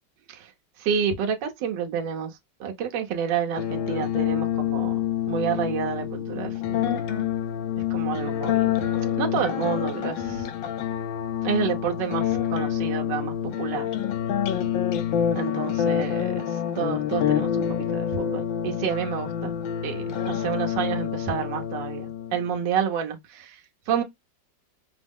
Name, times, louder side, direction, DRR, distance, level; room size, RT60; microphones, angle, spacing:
voice 1, 0.8-4.9 5.3-6.9 7.9-8.8 9.2-10.5 11.4-13.9 15.3-19.5 19.8-23.6 23.9-24.0, right 7 dB, 70° right, 1.5 m, -29 dB
sound 1, 3.5-22.5, left 10 dB, 85° left, 1.5 m, -27 dB
5.7 x 2.0 x 3.5 m
omnidirectional pair, 2.1 m